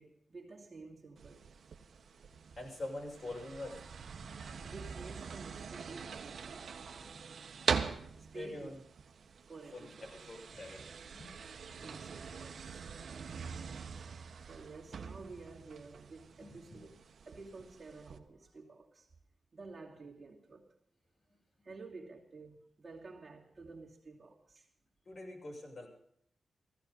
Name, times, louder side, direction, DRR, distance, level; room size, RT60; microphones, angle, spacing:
voice 1, 0.0-1.5 4.6-6.8 8.3-8.7 9.5-10.1 11.8-12.9 14.5-16.9 17.2-19.1 19.5-20.7 21.6-24.7, right 3 dB, 35° right, 2.9 m, -51 dB
sound 1, 1.2-18.2, right 6 dB, 65° right, 1.5 m, -43 dB
voice 2, 2.6-3.8 4.5-4.7 7.0-7.2 8.3-8.8 9.7-11.3 11.6-11.9 14.3-14.4 16.4-16.8 25.0-25.9, left 2 dB, 45° left, 6.7 m, -45 dB
16.5 x 16.0 x 5.4 m
wide cardioid pair, 140°, 0 cm